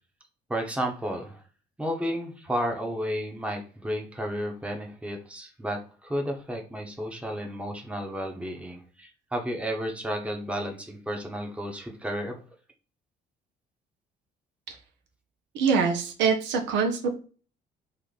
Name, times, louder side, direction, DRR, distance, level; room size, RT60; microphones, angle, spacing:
voice 1, 0.5-1.4 1.8-12.4, equal, 5° right, 2 dB, 0.9 m, -32 dB
voice 2, 15.5-17.1, right 5 dB, 85° right, 4 dB, 0.8 m, -24 dB
3.2 x 2.5 x 4.0 m, 0.38 s
cardioid pair, 95°, 18 cm